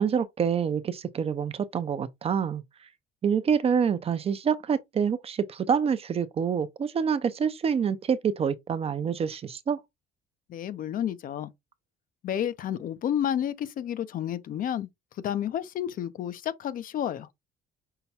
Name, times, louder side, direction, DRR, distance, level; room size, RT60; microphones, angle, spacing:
voice 1, 0.0-2.6 3.2-9.8, right 7 dB, 35° right, 0.6 m, -27 dB
voice 2, 10.5-11.5 12.2-14.9 15.2-17.3, left 10 dB, 55° left, 0.6 m, -30 dB
5.7 x 2.2 x 4.1 m
cardioid pair, 110°, 17 cm